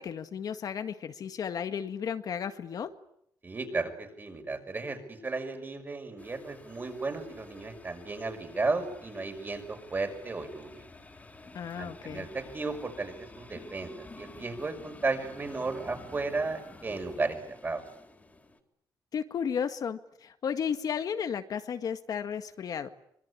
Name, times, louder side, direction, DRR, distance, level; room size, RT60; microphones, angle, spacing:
voice 1, 0.0-2.9 11.5-12.3 19.1-22.9, left 7 dB, 60° left, 8 dB, 1.9 m, -34 dB
voice 2, 3.4-10.8 11.8-17.8, right 3 dB, 30° right, 6 dB, 5.8 m, -34 dB
sound 1, 6.2-18.6, left 2 dB, 20° left, 3.8 m, -50 dB
25.0 x 23.5 x 9.9 m, 0.74 s
cardioid pair, 125°, 7 cm